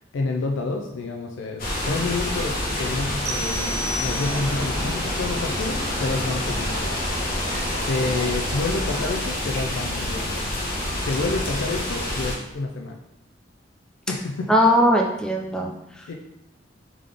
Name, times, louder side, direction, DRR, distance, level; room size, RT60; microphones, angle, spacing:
voice 1, 0.0-6.9 7.9-10.3 11.1-13.0 14.1-14.7 16.1-16.2, left 3 dB, 90° left, 2 dB, 0.4 m, -29 dB
sound 1, 1.6-12.4, left 1 dB, 50° left, 0.9 m, -27 dB
sound 2, 3.3-4.8, equal, 60° right, 0.5 m, -32 dB
Livestock farm animals working animals, 3.6-9.3, right 1 dB, 25° right, 1.4 m, -37 dB
voice 2, 14.5-16.1, equal, 5° left, 1 dB, 0.4 m, -20 dB
3.6 x 3.6 x 3.3 m, 0.85 s
head